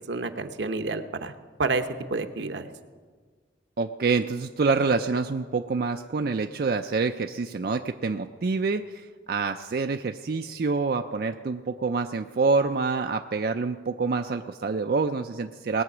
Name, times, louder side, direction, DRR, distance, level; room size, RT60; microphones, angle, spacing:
voice 1, 0.1-1.3 1.6-2.7, right 3 dB, 85° right, 8 dB, 0.9 m, -29 dB
voice 2, 3.8-15.8, right 4 dB, 55° right, 6 dB, 0.4 m, -27 dB
19.5 x 8.5 x 6.1 m, 1.5 s
head